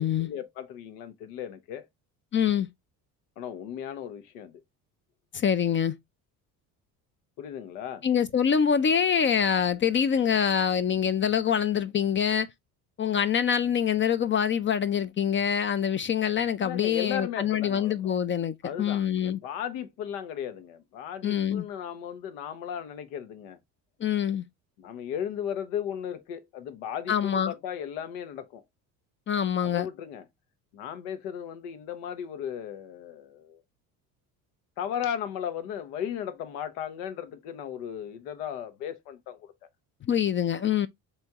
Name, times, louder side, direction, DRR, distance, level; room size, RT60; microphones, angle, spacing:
voice 1, 0.0-1.9 3.4-4.6 7.4-8.0 16.6-18.2 18.6-23.6 24.8-28.6 29.6-30.2 30.7-33.6 34.8-39.5, left 9 dB, 85° left, 0.9 m, -36 dB
voice 2, 2.3-2.7 5.3-5.9 8.0-12.5 13.0-19.4 21.2-21.6 24.0-24.4 27.1-27.5 29.3-29.9 40.0-40.9, left 8 dB, 30° left, 0.4 m, -25 dB
4.2 x 3.0 x 3.4 m
supercardioid pair, 80°, 44 cm